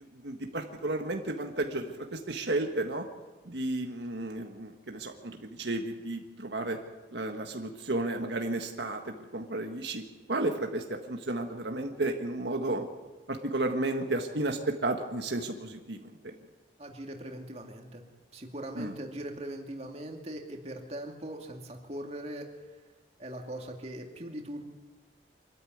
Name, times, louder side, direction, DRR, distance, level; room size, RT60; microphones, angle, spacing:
voice 1, 0.1-3.1 3.5-6.8 7.1-12.9 13.3-16.3 18.8-18.9, right 2 dB, 70° right, 4 dB, 1.6 m, -33 dB
voice 2, 16.8-18.0 18.3-22.5 23.2-24.6, right 1 dB, 35° right, 2 dB, 2.6 m, -40 dB
25.5 x 13.5 x 9.5 m, 1.2 s
head